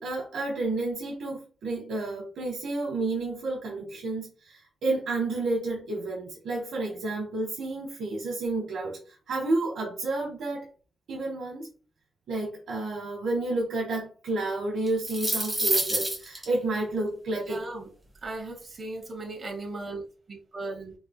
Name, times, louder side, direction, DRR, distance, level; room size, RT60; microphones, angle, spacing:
voice 1, 0.0-9.0 9.3-10.7 11.1-11.7 12.3-17.6, right 2 dB, 85° right, 1.0 m, -30 dB
sound 1, 14.9-16.4, right 1 dB, 10° right, 1.6 m, -27 dB
voice 2, 17.3-17.9 18.2-20.9, right 2 dB, 35° right, 0.9 m, -37 dB
3.8 x 3.2 x 2.2 m
wide cardioid pair, 120°, 0 cm